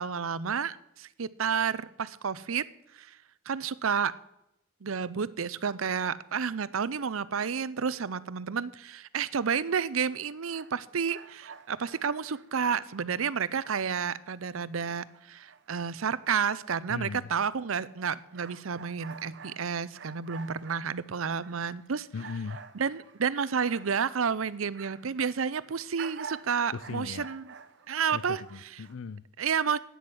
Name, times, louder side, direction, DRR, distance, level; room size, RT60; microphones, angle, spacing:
voice 1, 0.0-2.6 2.9-3.2 3.5-4.1 4.8-22.1 22.7-27.5 27.9-28.4 29.4-29.8, right 6 dB, 75° right, 17 dB, 0.6 m, -30 dB
sound 1, 9.6-14.2 14.6-25.2 25.5-28.9, right 6 dB, 60° right, 1.0 m, -50 dB
voice 2, 16.9-17.3 22.1-22.6 26.7-27.3 28.1-29.2, left 5 dB, 70° left, 16 dB, 0.5 m, -38 dB
13.0 x 9.4 x 7.9 m, 0.86 s
head